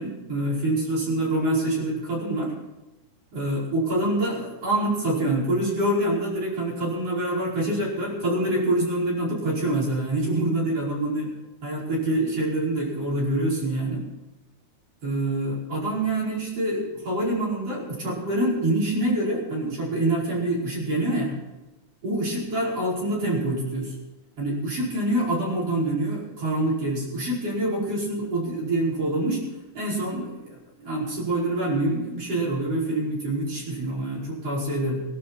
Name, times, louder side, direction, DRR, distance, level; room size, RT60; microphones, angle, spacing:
voice 1, 0.0-2.5 3.3-11.3 11.6-14.0 15.0-21.4 22.0-23.9 24.4-29.4 29.7-35.0, right 1 dB, 45° right, -4 dB, 6.2 m, -26 dB
22.5 x 12.0 x 4.4 m, 1.1 s
omnidirectional pair, 3.8 m